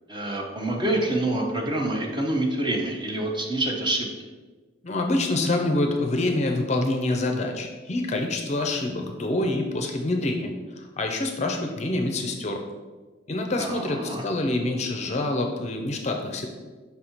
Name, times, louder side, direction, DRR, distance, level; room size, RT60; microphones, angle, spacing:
voice 1, 0.1-4.1 13.6-14.2, right 1 dB, 25° right, 1 dB, 0.7 m, -26 dB
voice 2, 4.8-12.6 13.3-16.5, left 2 dB, 35° left, 3 dB, 0.5 m, -26 dB
5.6 x 4.1 x 4.4 m, 1.3 s
head